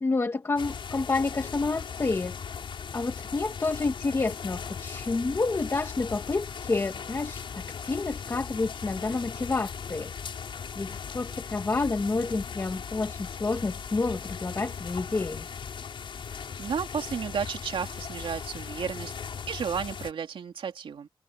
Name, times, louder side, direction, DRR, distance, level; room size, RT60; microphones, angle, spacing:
voice 1, 0.0-2.4 2.9-10.1 10.7-15.5, left 3 dB, 30° left, 1.7 m, -29 dB
sound 1, 0.6-20.1, left 6 dB, 75° left, 5.2 m, -38 dB
voice 2, 16.3-19.1 19.5-21.1, right 7 dB, 80° right, 2.7 m, -33 dB
wide cardioid pair, 140°, 9 cm